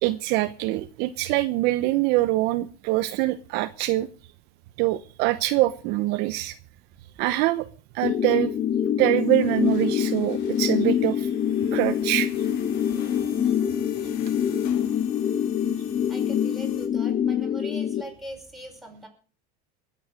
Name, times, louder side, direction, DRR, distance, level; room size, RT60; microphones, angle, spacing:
voice 1, 0.0-4.1 4.8-6.5 7.2-7.7 7.9-8.5 9.0-11.3 11.7-12.3, right 17 dB, 55° right, 12 dB, 0.9 m, -24 dB
sound 1, 8.0-18.0, left 9 dB, 30° left, 1.5 m, -25 dB
sound 2, 9.2-16.9, left 7 dB, 60° left, 3.3 m, -45 dB
voice 2, 16.1-19.1, equal, ahead, 1 dB, 5.5 m, -41 dB
20.5 x 8.0 x 6.3 m, 0.39 s
supercardioid pair, 130°, 20 cm